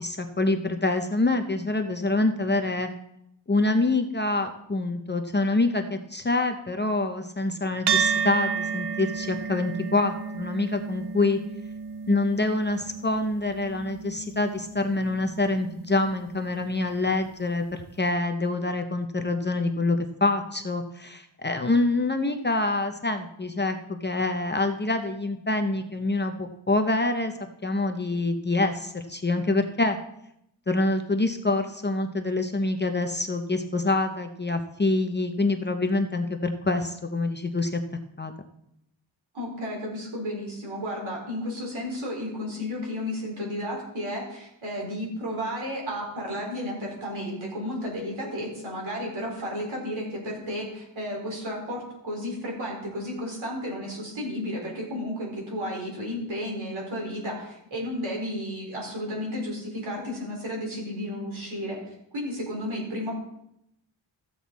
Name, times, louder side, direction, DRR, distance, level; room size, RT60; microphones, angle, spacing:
voice 1, 0.0-2.9 3.5-11.4 12.1-27.3 27.6-30.0 30.7-37.8 38.2-38.3, left 2 dB, 25° left, 5 dB, 0.6 m, -26 dB
sound 1, 7.9-16.5, right 6 dB, 60° right, 0.6 m, -32 dB
voice 2, 39.3-61.8 62.1-63.2, equal, 80° right, -2 dB, 4.7 m, -33 dB
14.5 x 7.8 x 4.1 m, 0.79 s
wide cardioid pair, 175°, 47 cm